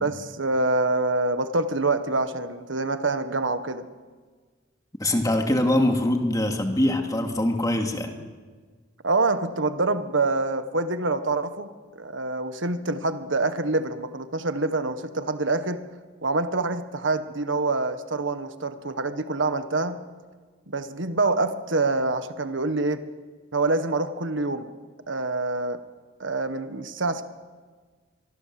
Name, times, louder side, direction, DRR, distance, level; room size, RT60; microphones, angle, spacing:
voice 1, 0.0-3.9 9.0-11.7 12.0-15.8 16.2-20.0 20.7-23.0 23.5-24.7 25.1-25.8 26.2-27.2, right 2 dB, 85° right, 10 dB, 1.5 m, -26 dB
voice 2, 5.0-8.1, left 1 dB, 20° left, 3 dB, 2.7 m, -23 dB
24.0 x 24.0 x 7.8 m, 1.5 s
head